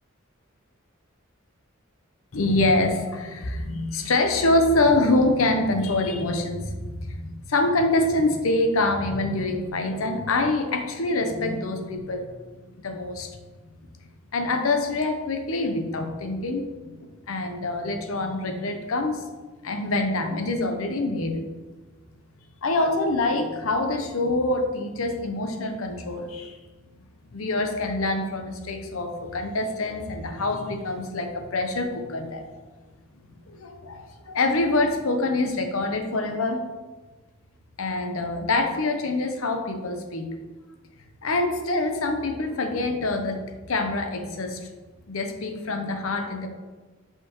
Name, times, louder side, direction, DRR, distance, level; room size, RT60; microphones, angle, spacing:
voice 1, 2.3-12.2 12.8-13.3 14.3-16.9 17.3-19.2 19.6-21.4 22.6-26.6 27.3-32.5 33.5-36.6 37.8-40.3 41.2-44.6 45.1-46.5, left 2 dB, 80° left, 5 dB, 0.8 m, -25 dB
6.0 x 5.2 x 3.0 m, 1.3 s
head